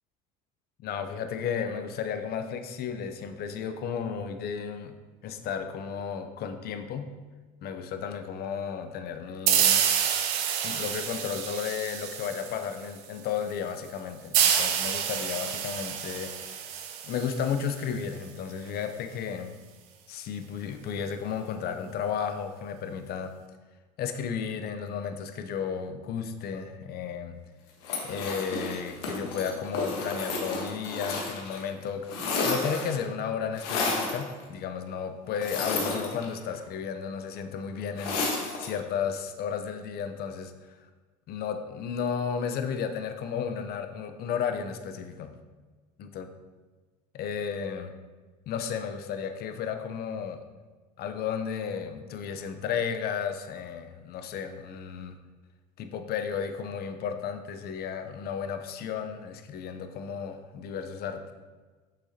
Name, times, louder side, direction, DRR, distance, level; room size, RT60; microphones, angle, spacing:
voice 1, 0.8-5.0 5.2-7.1 7.6-9.9 10.6-16.6 17.0-19.5 20.1-23.3 24.0-27.4 28.0-38.2 38.6-40.5 41.3-45.3 46.0-46.2 47.1-47.9 48.5-50.4 51.0-55.1 55.8-61.3, left 7 dB, 55° left, 7 dB, 0.8 m, -33 dB
sound 1, 9.5-12.9 14.3-17.8, right 8 dB, 75° right, 0.8 m, -28 dB
sound 2, 27.8-31.6 31.9-33.0 33.6-34.2 35.4-36.6 38.0-38.8, left 3 dB, 80° left, 1.4 m, -31 dB
6.4 x 6.2 x 2.9 m, 1.3 s
hypercardioid pair, 80°, 19 cm